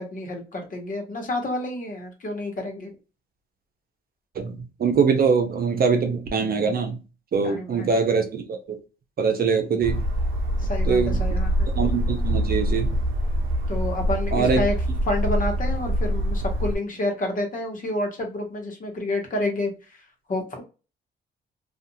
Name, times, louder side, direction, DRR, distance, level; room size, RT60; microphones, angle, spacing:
voice 1, 0.0-2.9 7.4-7.9 10.6-11.7 13.7-14.7 15.1-19.7 20.3-20.6, left 1 dB, 40° left, 1.1 m, -29 dB
voice 2, 4.3-7.0 7.3-8.8 9.2-10.0 10.9-11.2 11.7-13.0 14.3-14.6, right 5 dB, 50° right, 0.7 m, -23 dB
sound 1, 9.8-16.8, equal, 90° right, 0.6 m, -24 dB
2.5 x 2.4 x 2.7 m
cardioid pair, 90°, 20 cm